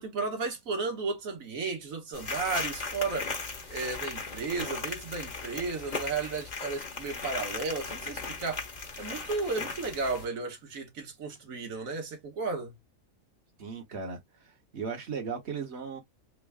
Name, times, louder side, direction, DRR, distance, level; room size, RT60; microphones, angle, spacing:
voice 1, 0.0-3.3 3.7-8.7 9.0-12.8, right 4 dB, 85° right, 1.6 m, -34 dB
sound 1, 2.1-10.2, left 4 dB, 35° left, 1.1 m, -37 dB
voice 2, 13.6-16.0, right 5 dB, 55° right, 1.5 m, -37 dB
3.7 x 2.1 x 3.5 m
omnidirectional pair, 1.4 m